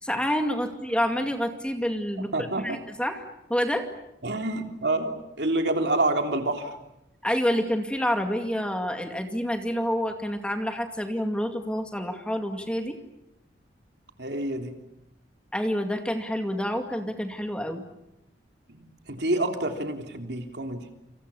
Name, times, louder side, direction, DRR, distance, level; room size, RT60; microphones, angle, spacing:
voice 1, 0.0-3.2 3.5-3.9 7.2-13.0 15.5-17.8, equal, 5° left, 5 dB, 2.3 m, -28 dB
voice 2, 2.2-2.8 4.2-6.8 14.2-14.7 18.7-20.9, right 2 dB, 65° right, 4 dB, 3.4 m, -28 dB
29.0 x 27.0 x 7.2 m, 0.86 s
head